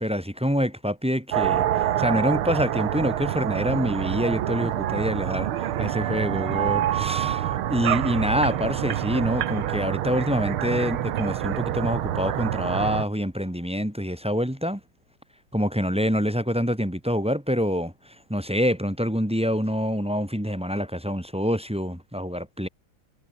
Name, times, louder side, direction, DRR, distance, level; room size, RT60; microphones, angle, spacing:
voice 1, 0.0-14.8 15.5-22.7, equal, 5° right, 1.6 m, -26 dB
sound 1, 1.3-13.0, right 11 dB, 85° right, 1.9 m, -26 dB
omnidirectional pair, 2.3 m